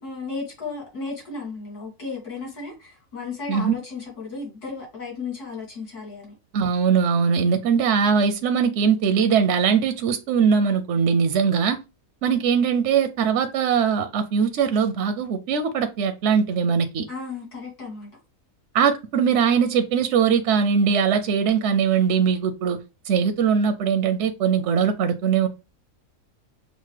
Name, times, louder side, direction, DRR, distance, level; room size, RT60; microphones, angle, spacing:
voice 1, 0.0-6.3 17.1-18.1, left 4 dB, 85° left, 2.7 m, -34 dB
voice 2, 6.5-11.8 12.2-17.1 18.7-22.8 23.1-25.5, right 6 dB, 65° right, 0.7 m, -21 dB
6.2 x 2.1 x 3.2 m
omnidirectional pair, 1.6 m